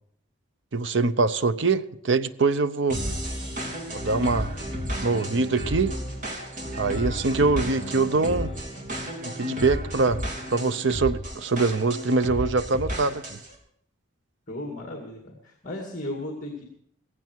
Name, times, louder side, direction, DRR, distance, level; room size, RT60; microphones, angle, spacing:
voice 1, 0.7-3.0 3.9-4.5 5.0-6.0 6.8-8.5 9.2-10.2 10.5-13.4, right 3 dB, 60° right, 0.7 m, -24 dB
sound 1, 2.9-13.5, equal, 40° right, 3.0 m, -32 dB
voice 2, 14.5-16.6, left 1 dB, 35° left, 2.1 m, -35 dB
17.0 x 15.0 x 4.6 m
head